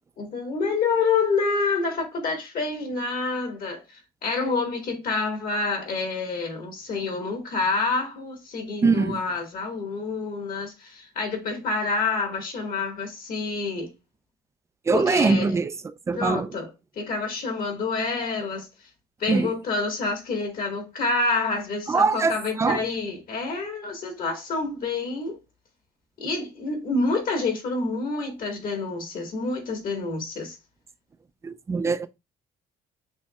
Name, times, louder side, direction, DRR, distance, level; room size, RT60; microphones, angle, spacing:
voice 1, 0.2-13.9 14.9-15.6 16.2-16.7 17.0-18.7 19.2-25.4 26.2-30.6, left 3 dB, 55° left, 1.7 m, -28 dB
voice 2, 8.8-9.2 14.9-16.5 19.3-19.5 21.9-22.8 31.4-32.1, right 4 dB, 15° right, 0.3 m, -23 dB
6.1 x 2.6 x 2.3 m
cardioid pair, 110°, 17 cm